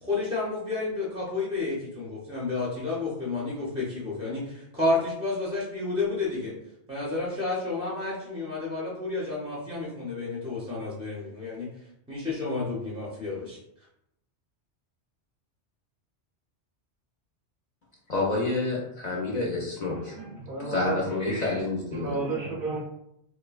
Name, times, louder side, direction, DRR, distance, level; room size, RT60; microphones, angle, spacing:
voice 1, 0.0-6.5 6.9-11.7 12.1-13.6, left 3 dB, 10° right, -5 dB, 0.4 m, -31 dB
voice 2, 18.1-20.1 20.6-22.1, left 2 dB, 50° left, -3 dB, 0.5 m, -28 dB
voice 3, 19.9-21.6 21.9-22.8, right 3 dB, 60° right, -3 dB, 0.6 m, -33 dB
3.1 x 2.1 x 2.3 m, 0.79 s
omnidirectional pair, 1.2 m